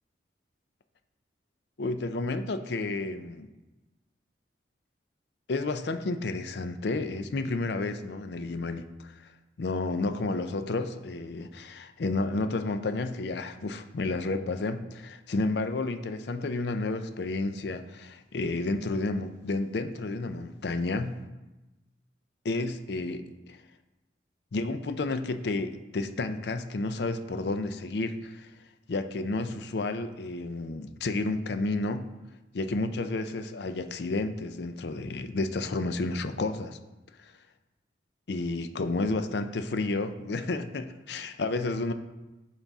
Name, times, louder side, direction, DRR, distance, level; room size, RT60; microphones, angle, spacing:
voice 1, 1.8-3.5 5.5-9.1 9.6-21.2 22.4-23.3 24.5-28.5 28.9-32.1 32.5-36.8 38.3-41.9, left 2 dB, 65° left, 9 dB, 0.5 m, -31 dB
11.0 x 4.0 x 3.5 m, 1.1 s
head